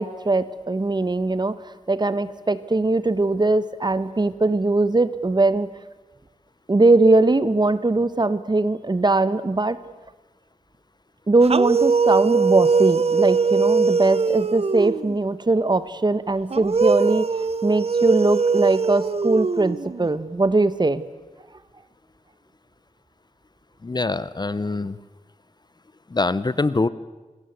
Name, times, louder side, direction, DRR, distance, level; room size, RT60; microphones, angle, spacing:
voice 1, 0.0-1.6 1.9-5.7 6.7-9.8 11.3-17.2 17.6-21.0, right 2 dB, 35° right, 15 dB, 1.2 m, -20 dB
sound 1, 11.4-15.2 16.5-20.1, right 5 dB, 50° right, 0.8 m, -21 dB
voice 2, 23.8-25.0 26.1-26.9, left 3 dB, 35° left, 17 dB, 0.8 m, -24 dB
26.5 x 21.5 x 8.2 m, 1.2 s
wide cardioid pair, 105°, 13 cm